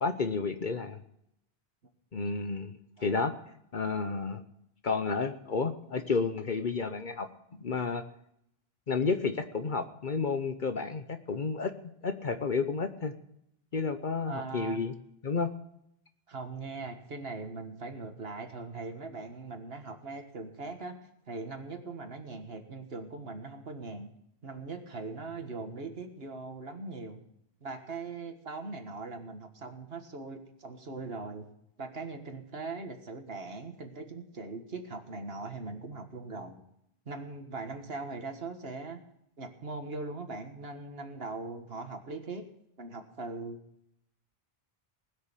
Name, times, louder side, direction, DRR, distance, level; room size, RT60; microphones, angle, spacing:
voice 1, 0.0-1.0 2.1-2.7 3.0-3.3 3.7-4.4 4.8-7.3 7.6-8.0 8.9-11.7 12.0-13.1 13.7-14.9 15.2-15.5, left 4 dB, 55° left, 9 dB, 1.0 m, -31 dB
voice 2, 14.3-14.8 16.3-21.0 21.3-24.1 24.4-27.2 27.6-31.5 31.8-36.6 37.1-39.0 39.4-42.5 42.8-43.6, right 3 dB, 70° right, 6 dB, 1.9 m, -40 dB
19.5 x 6.7 x 8.3 m, 0.76 s
omnidirectional pair, 1.0 m